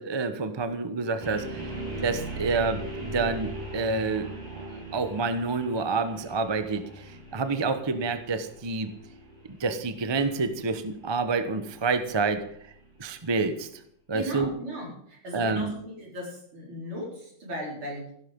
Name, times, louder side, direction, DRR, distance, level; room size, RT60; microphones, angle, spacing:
voice 1, 0.0-1.7 2.0-4.3 4.9-8.9 9.6-12.4 13.0-13.7 14.1-14.5 15.3-15.7, right 4 dB, 25° right, 10 dB, 0.5 m, -28 dB
sound 1, 1.2-13.2, right 2 dB, 60° right, 5.3 m, -40 dB
voice 2, 14.1-18.1, equal, 85° right, -2 dB, 5.5 m, -37 dB
15.5 x 12.0 x 5.3 m, 0.69 s
omnidirectional pair, 2.3 m